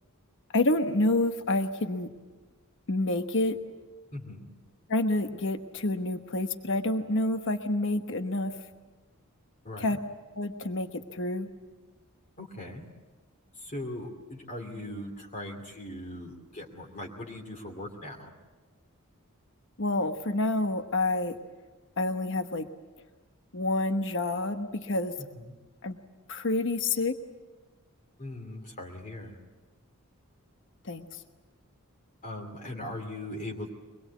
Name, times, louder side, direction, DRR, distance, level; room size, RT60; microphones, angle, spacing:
voice 1, 0.5-2.1 2.9-3.6 4.9-8.6 9.8-10.0 10.4-11.5 19.8-21.4 22.0-22.6 23.5-25.1 25.8-26.0 26.3-27.1 30.8-31.1, left 2 dB, 55° left, 7 dB, 1.2 m, -28 dB
voice 2, 4.1-4.5 9.6-10.0 12.4-12.9 13.6-18.3 25.2-25.5 28.2-29.3 32.2-33.7, left 1 dB, 35° left, 1 dB, 2.7 m, -40 dB
24.0 x 21.5 x 8.3 m, 1.3 s
head